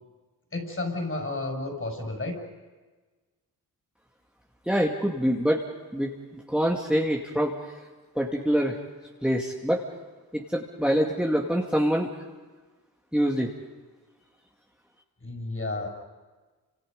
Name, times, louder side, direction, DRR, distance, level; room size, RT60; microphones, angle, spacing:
voice 1, 0.5-2.3 15.2-15.9, left 2 dB, 35° left, 2 dB, 6.7 m, -31 dB
voice 2, 4.7-5.6 5.9-7.5 8.2-8.8 9.2-9.8 10.3-12.1 13.1-13.5, equal, 5° right, -1 dB, 2.4 m, -25 dB
29.0 x 26.5 x 5.4 m, 1.3 s
cardioid pair, 65°, 38 cm